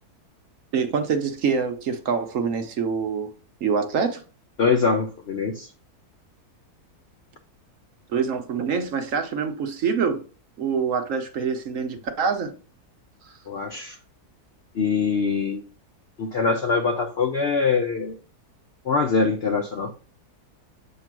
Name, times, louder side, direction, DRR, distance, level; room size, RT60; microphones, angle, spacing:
voice 1, 0.7-3.3 3.6-4.2 8.1-10.2 10.6-12.5 13.2-13.3, right 6 dB, 60° right, 1.0 m, -25 dB
voice 2, 4.6-5.7 13.5-14.0 14.7-15.6 16.2-18.2 18.8-19.9, left 5 dB, 60° left, 0.6 m, -23 dB
7.8 x 2.9 x 6.0 m
omnidirectional pair, 1.7 m